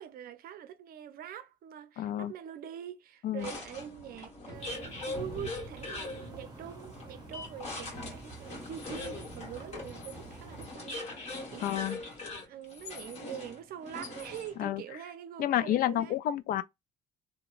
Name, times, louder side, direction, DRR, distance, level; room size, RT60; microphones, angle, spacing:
voice 1, 0.0-11.9 12.4-16.2, right 10 dB, 60° right, 0.6 m, -44 dB
voice 2, 2.0-2.3 3.2-3.5 11.6-12.0 14.6-14.8 15.4-16.6, left 12 dB, 55° left, 0.4 m, -30 dB
sound 1, 3.4-14.7, left 2 dB, 40° left, 1.4 m, -42 dB
sound 2, 4.5-10.7, right 3 dB, 25° right, 0.8 m, -50 dB
2.9 x 2.2 x 2.3 m
cardioid pair, 110°, 17 cm